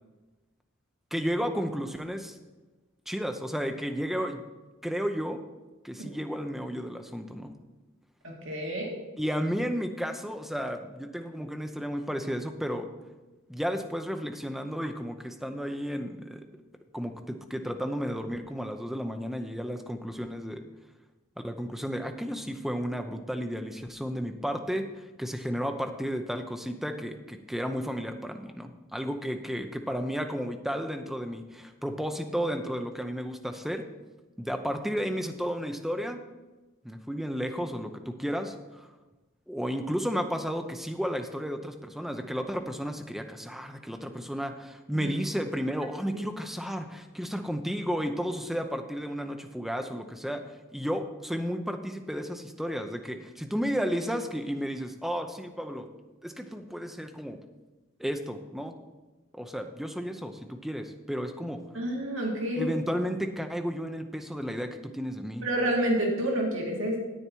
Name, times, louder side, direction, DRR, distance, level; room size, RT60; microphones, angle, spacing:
voice 1, 1.1-2.4 3.1-4.4 4.8-5.4 5.8-7.6 9.2-12.9 13.5-16.4 16.9-20.6 21.4-33.8 34.4-36.2 36.8-38.9 39.5-50.4 50.7-55.9 56.2-57.4 58.0-58.7 59.3-61.6 62.6-65.5, equal, ahead, 6 dB, 0.6 m, -33 dB
voice 2, 8.2-8.9 44.9-45.1 61.7-62.7 65.4-67.0, right 1 dB, 70° right, -1 dB, 2.2 m, -29 dB
10.0 x 8.7 x 4.6 m, 1.2 s
head